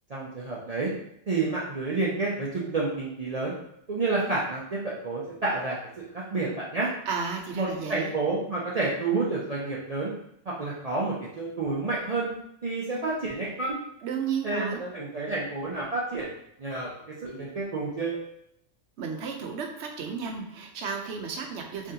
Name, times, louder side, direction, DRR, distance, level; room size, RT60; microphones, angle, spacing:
voice 1, 0.1-0.9 1.3-3.5 3.9-6.9 7.5-10.1 10.5-12.3 12.6-13.8 14.4-16.3 16.6-16.9 17.2-18.2, right 3 dB, 40° right, -6 dB, 0.6 m, -29 dB
voice 2, 7.1-8.1 14.0-14.8 19.0-21.9, right 6 dB, 80° right, 2 dB, 1.0 m, -33 dB
3.7 x 3.5 x 2.8 m, 0.75 s
omnidirectional pair, 1.2 m